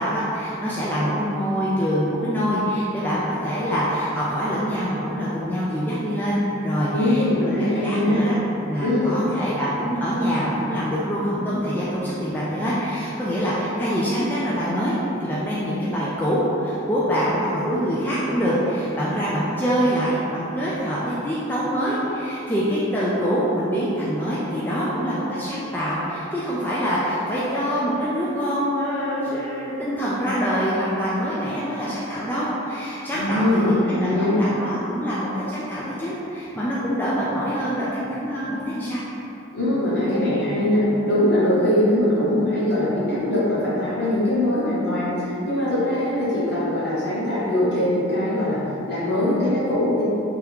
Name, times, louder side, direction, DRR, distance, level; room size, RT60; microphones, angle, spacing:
voice 1, 0.0-7.2 7.8-8.3 8.7-39.0, equal, 10° left, -8 dB, 0.3 m, -25 dB
voice 2, 6.9-8.2 8.8-9.2 33.1-34.4 39.5-48.6 48.9-50.1, left 1 dB, 60° left, -9 dB, 1.2 m, -22 dB
3.5 x 2.9 x 3.4 m, 3.0 s
head